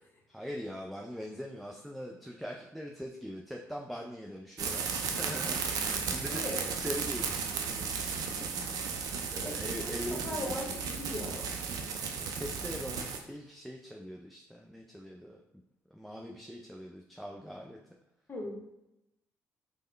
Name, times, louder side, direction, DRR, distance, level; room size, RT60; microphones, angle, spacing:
voice 1, 0.3-8.4 9.3-10.5 12.2-15.4 15.9-17.8, equal, ahead, 0 dB, 0.4 m, -42 dB
sound 1, 4.6-13.2, right 5 dB, 65° right, 0.4 m, -34 dB
voice 2, 6.3-6.7 9.4-11.5 18.3-18.6, left 1 dB, 35° left, 0 dB, 1.0 m, -39 dB
3.5 x 2.1 x 3.3 m, 0.89 s
hypercardioid pair, 50°, 7 cm